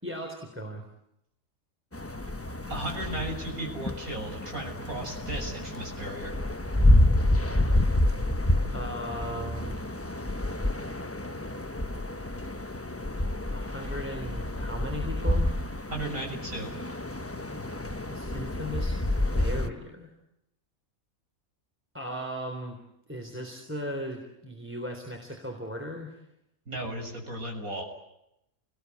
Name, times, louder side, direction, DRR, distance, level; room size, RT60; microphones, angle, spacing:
voice 1, 0.0-0.9 8.7-9.9 13.5-15.5 18.1-19.0 19.3-20.1 21.9-22.8 23.1-26.2, equal, 10° right, 2 dB, 3.7 m, -37 dB
sound 1, 1.9-19.7, left 1 dB, 10° left, 0.9 m, -28 dB
voice 2, 2.5-6.3 15.9-16.7 26.7-27.8, right 1 dB, 90° right, 1 dB, 7.5 m, -35 dB
29.5 x 20.5 x 9.6 m, 0.84 s
omnidirectional pair, 1.4 m